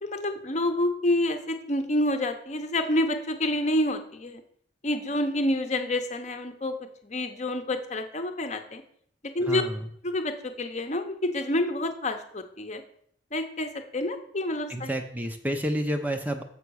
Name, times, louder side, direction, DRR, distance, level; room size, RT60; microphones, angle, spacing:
voice 1, 0.0-4.4 4.8-6.7 7.0-8.8 9.3-9.6 10.0-12.8 13.3-14.9, left 1 dB, 40° left, 7 dB, 0.9 m, -28 dB
voice 2, 9.4-9.9 14.7-16.4, equal, 10° right, 6 dB, 0.6 m, -30 dB
6.9 x 5.8 x 6.3 m, 0.64 s
head